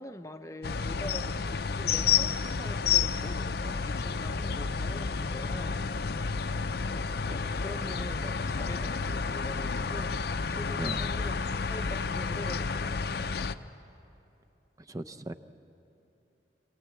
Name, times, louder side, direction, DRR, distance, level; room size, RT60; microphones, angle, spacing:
voice 1, 0.0-5.9 7.2-13.4, left 1 dB, 15° left, 7 dB, 0.7 m, -44 dB
sound 1, 0.6-13.5, left 5 dB, 60° left, 0.6 m, -30 dB
voice 2, 14.9-15.3, right 1 dB, 20° right, 8 dB, 0.6 m, -37 dB
26.5 x 16.5 x 8.4 m, 2.9 s
head